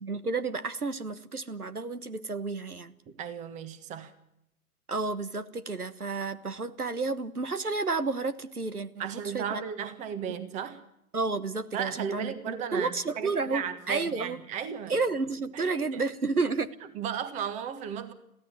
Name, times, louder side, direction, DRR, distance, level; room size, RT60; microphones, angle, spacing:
voice 1, 0.0-2.9 4.9-9.1 9.3-9.6 10.3-10.4 11.1-14.4 14.9-16.7, right 3 dB, 85° right, 14 dB, 1.4 m, -31 dB
voice 2, 3.2-4.1 9.0-10.8 11.7-14.9 15.5-16.0 16.9-18.1, right 8 dB, 15° right, 12 dB, 1.4 m, -35 dB
23.0 x 15.5 x 8.7 m, 0.80 s
figure-of-eight pair, 125°, 43 cm